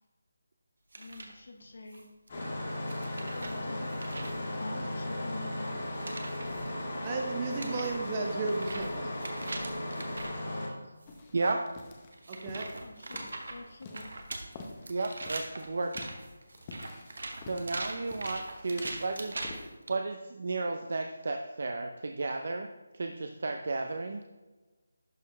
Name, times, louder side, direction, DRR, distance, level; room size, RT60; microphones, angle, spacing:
sound 1, 0.9-1.3 1.9-2.3 2.9-4.4 5.8-6.7 7.2-7.3 7.5-10.4 11.0-11.2 12.1-19.9, right 2 dB, 65° right, 1.0 m, -42 dB
voice 1, 1.0-2.1 3.3-5.8 12.8-14.1, left 2 dB, 55° left, 4 dB, 1.0 m, -46 dB
Engine starting, 2.3-10.7, left 1 dB, 35° left, 1.9 m, -36 dB
voice 2, 7.0-9.2 12.3-12.7, right 3 dB, 20° right, 2 dB, 0.8 m, -34 dB
sound 2, 11.1-19.6, left 3 dB, 20° left, 0.6 m, -49 dB
voice 3, 11.3-11.6 14.9-16.1 17.5-19.4 19.9-24.2, right 3 dB, 50° right, 4 dB, 0.5 m, -33 dB
11.5 x 4.2 x 3.2 m, 1.2 s
figure-of-eight pair, 175°, 0 cm